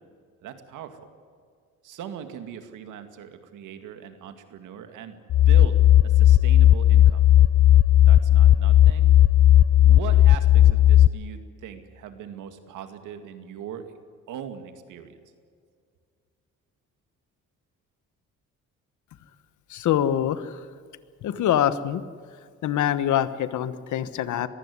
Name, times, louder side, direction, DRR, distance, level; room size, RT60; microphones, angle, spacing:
voice 1, 0.4-1.1 1.8-7.3 8.0-9.1 9.7-13.9 14.3-15.2, right 9 dB, 85° right, 8 dB, 2.3 m, -40 dB
sound 1, 5.3-11.1, left 12 dB, 55° left, 0.6 m, -15 dB
voice 2, 19.7-20.6 21.2-22.0 22.6-24.5, left 10 dB, 75° left, 14 dB, 1.3 m, -24 dB
22.5 x 15.5 x 9.6 m, 2.1 s
cardioid pair, 90°, 30 cm